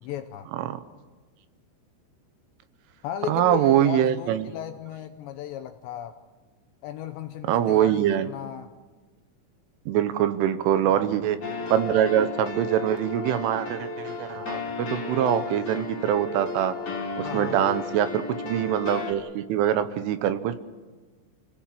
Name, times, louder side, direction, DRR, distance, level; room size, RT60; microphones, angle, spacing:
voice 1, 0.0-0.5 3.0-6.2 6.8-8.7 10.8-11.2 17.2-17.7, left 10 dB, 80° left, 6 dB, 2.7 m, -36 dB
voice 2, 3.3-4.4 7.5-8.3 9.9-11.4 11.7-16.7 17.2-20.6, right 10 dB, 80° right, 11 dB, 3.4 m, -24 dB
sound 1, 11.4-19.1, left 4 dB, 35° left, 3.6 m, -33 dB
29.5 x 17.5 x 7.6 m, 1.3 s
omnidirectional pair, 5.9 m